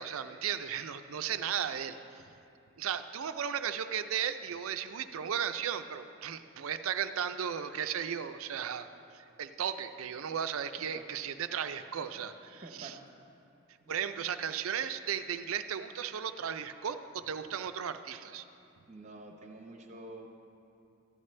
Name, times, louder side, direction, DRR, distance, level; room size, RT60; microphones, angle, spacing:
voice 1, 0.0-2.2 2.8-8.9 9.1-13.0 13.9-18.4, right 8 dB, 85° right, 10 dB, 0.5 m, -35 dB
voice 2, 12.6-13.0 13.8-14.0 18.9-20.3, right 2 dB, 35° right, 2 dB, 0.8 m, -48 dB
14.0 x 11.0 x 3.2 m, 2.6 s
head